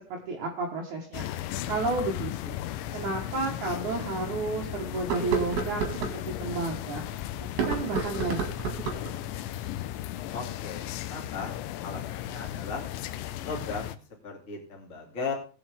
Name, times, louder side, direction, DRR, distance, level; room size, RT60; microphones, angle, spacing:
voice 1, 0.1-1.3 1.7-2.6 2.9-7.0 7.4-8.7, right 3 dB, 75° right, -1 dB, 1.7 m, -32 dB
sound 1, 1.1-14.0, left 12 dB, 80° left, 2.7 m, -36 dB
sound 2, 3.0-3.1 3.7-3.8 4.9-6.2 7.4-9.1, right 5 dB, 55° right, 2.6 m, -31 dB
voice 2, 10.3-12.9 13.4-14.0 14.2-15.3, left 4 dB, 30° left, -2 dB, 1.5 m, -37 dB
19.0 x 7.1 x 3.5 m, 0.39 s
omnidirectional pair, 5.7 m